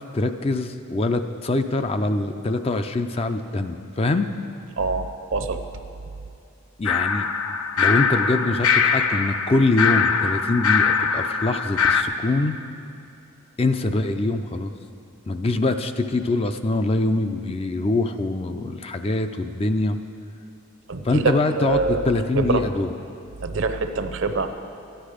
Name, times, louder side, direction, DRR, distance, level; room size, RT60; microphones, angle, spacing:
voice 1, 0.1-4.3 6.8-7.3 7.8-12.6 13.6-14.7 15.3-20.0 21.0-22.9, left 2 dB, 25° left, 8 dB, 0.4 m, -24 dB
voice 2, 4.8-5.6 20.9-22.1 22.4-22.7 23.4-24.5, right 3 dB, 60° right, 8 dB, 0.7 m, -24 dB
sound 1, 6.9-12.0, left 6 dB, 85° left, 0.6 m, -22 dB
13.5 x 10.5 x 5.0 m, 2.5 s
head